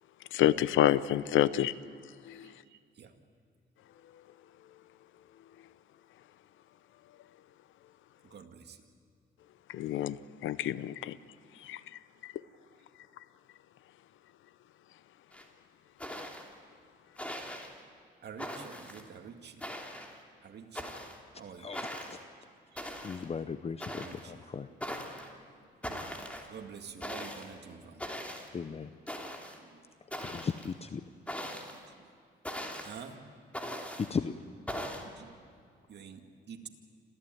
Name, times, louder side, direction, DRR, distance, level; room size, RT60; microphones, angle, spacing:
voice 1, 0.3-1.7 2.2-2.5 9.7-11.2 11.6-11.8 12.2-12.3, left 12 dB, 75° left, 0.7 m, -28 dB
voice 2, 2.2-3.1 8.2-8.8 10.9-11.0 11.5-11.6 18.2-19.7 20.4-21.0 21.4-21.7 22.7-22.9 23.9-24.9 26.5-28.0 29.6-29.9 31.4-32.1 32.8-33.2 35.0-35.4 35.9-36.7, right 6 dB, 60° right, 2.2 m, -49 dB
sound 1, 15.3-15.4 16.0-16.5 17.2-17.7 18.4-19.0 19.6-20.2 20.7-21.2 21.7-22.2 22.8-23.2 23.8-24.2 24.8-25.3 25.8-26.5 27.0-27.5 28.0-28.5 29.1-29.6 30.1-30.7 31.3-31.8 32.4-33.0 33.5-34.1 34.7-35.0, equal, 5° left, 3.1 m, -40 dB
voice 3, 21.6-22.2 23.0-24.7 28.5-28.9 30.2-31.1 34.0-34.3, left 5 dB, 30° left, 0.7 m, -36 dB
27.0 x 15.0 x 9.3 m
cardioid pair, 90°, 20 cm